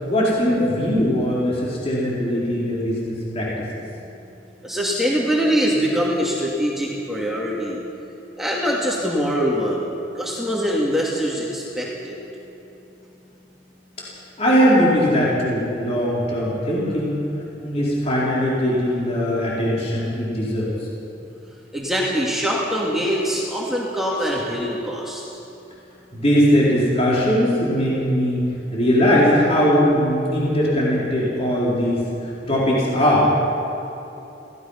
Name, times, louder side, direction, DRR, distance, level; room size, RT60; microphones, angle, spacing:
voice 1, 0.1-3.7 14.4-17.2 17.6-20.7 24.2-24.3 26.1-28.4 28.7-32.0 32.5-33.3, equal, 35° left, -7 dB, 4.4 m, -20 dB
voice 2, 4.6-7.8 8.4-9.8 10.1-12.2 21.7-25.2, equal, ahead, -5 dB, 2.3 m, -23 dB
26.5 x 17.5 x 5.8 m, 3.0 s
head